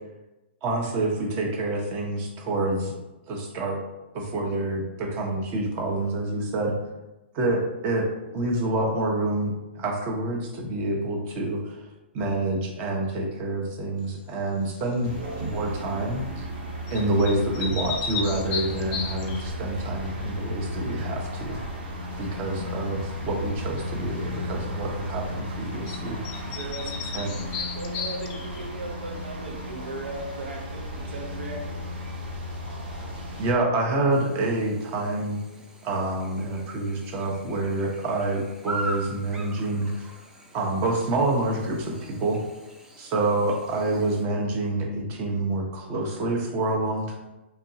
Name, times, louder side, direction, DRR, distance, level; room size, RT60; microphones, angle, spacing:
voice 1, 0.6-2.9 3.3-3.8 4.1-6.7 7.3-8.1 8.3-11.9 12.1-15.1 15.4-16.4 16.9-21.6 22.2-26.2 27.1-27.3 33.4-35.4 35.8-40.1 40.5-42.4 43.0-47.1, right 2 dB, 35° right, 0 dB, 0.9 m, -27 dB
sound 1, 14.7-15.1 16.9-19.5 25.9-26.0 26.2-28.7, left 5 dB, 35° left, 0.6 m, -34 dB
sound 2, 15.0-33.5, equal, 55° right, 1.3 m, -34 dB
voice 2, 26.5-31.8, right 1 dB, 75° right, 1 dB, 1.0 m, -37 dB
Chirp tweet / Buzz, 34.1-44.2, right 2 dB, 10° right, 0.6 m, -42 dB
4.3 x 3.0 x 2.7 m, 1.0 s
hypercardioid pair, 120°, 6 cm